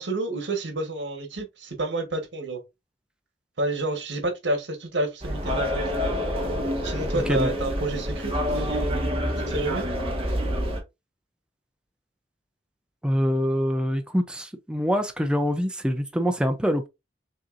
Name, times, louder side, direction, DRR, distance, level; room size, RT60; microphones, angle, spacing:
voice 1, 0.0-2.6 3.6-6.2 6.8-9.8, right 2 dB, 90° right, 1.3 m, -30 dB
sound 1, 5.2-10.8, equal, 35° right, 1.5 m, -27 dB
voice 2, 13.0-16.9, equal, 5° right, 0.5 m, -25 dB
6.3 x 2.9 x 2.5 m
head